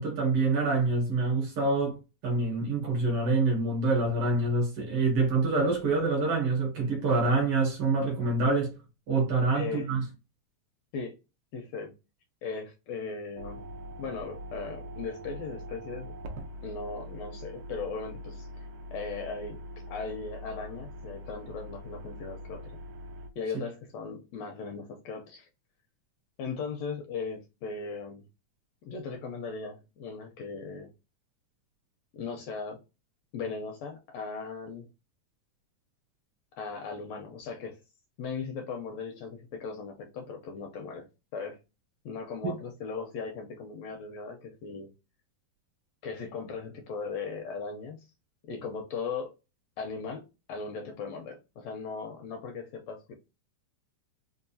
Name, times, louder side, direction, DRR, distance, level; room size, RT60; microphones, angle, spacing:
voice 1, 0.0-8.7 9.1-10.0 42.4-42.6, right 3 dB, 65° right, 1.6 m, -26 dB
voice 2, 9.5-9.9 10.9-11.2 11.5-11.9 12.4-13.6 14.0-16.1 16.6-19.6 19.9-22.7 23.4-25.5 26.4-28.2 28.8-30.9 32.1-32.8 33.3-34.9 36.6-37.8 38.2-41.1 41.3-41.6 42.0-44.9 46.0-48.1 48.5-49.3 49.8-53.1, left 5 dB, 80° left, 1.6 m, -38 dB
sound 1, 13.4-23.3, equal, 80° right, 1.3 m, -43 dB
4.6 x 2.4 x 2.6 m
omnidirectional pair, 3.4 m